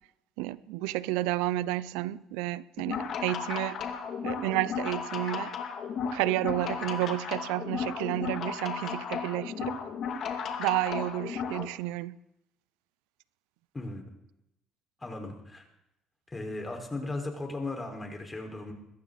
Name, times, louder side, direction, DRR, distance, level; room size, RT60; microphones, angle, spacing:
voice 1, 0.4-3.8 4.2-5.5 6.1-9.8 10.6-12.2, right 16 dB, 85° right, 0.5 m, -31 dB
sound 1, 2.8-11.7, left 6 dB, 60° left, 2.5 m, -34 dB
voice 2, 15.0-15.6 16.3-18.7, left 2 dB, 20° left, 4.9 m, -36 dB
22.0 x 15.5 x 4.1 m
supercardioid pair, 75°, 0 cm